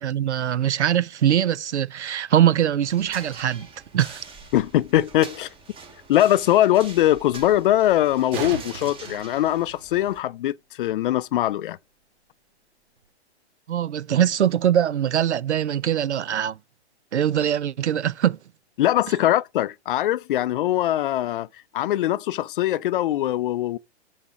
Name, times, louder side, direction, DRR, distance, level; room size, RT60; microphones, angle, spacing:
voice 1, 0.0-3.7 3.9-4.2 13.7-16.6 17.1-18.4, right 10 dB, 90° right, 0.7 m, -22 dB
sound 1, 2.8-10.2, right 4 dB, 15° right, 2.2 m, -44 dB
voice 2, 4.5-5.5 6.1-11.8 18.8-21.5 21.7-23.8, left 13 dB, 50° left, 0.5 m, -22 dB
sound 2, 8.1-10.1 13.0-13.1, right 6 dB, 55° right, 3.5 m, -36 dB
7.3 x 5.6 x 4.8 m
hypercardioid pair, 135°, 33 cm